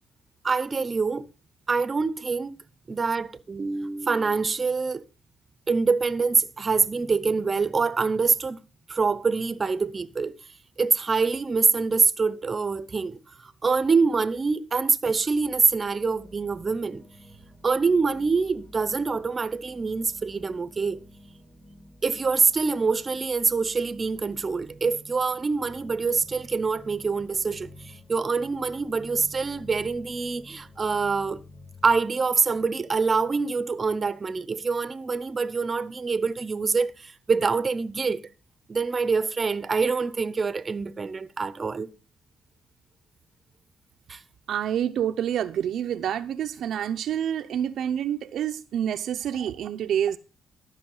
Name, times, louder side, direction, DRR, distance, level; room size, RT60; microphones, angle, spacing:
voice 1, 0.4-1.3 1.7-2.6 2.9-5.0 5.7-8.6 8.9-10.3 10.8-17.0 17.6-21.0 22.0-31.4 31.8-38.2 38.7-41.9 44.1-44.2, right 4 dB, 35° right, 0.7 m, -25 dB
sound 1, 15.2-32.0, equal, 35° left, 4.4 m, -50 dB
voice 2, 44.5-50.2, right 9 dB, 70° right, 0.6 m, -28 dB
13.0 x 5.7 x 5.5 m
cardioid pair, 90°, 0 cm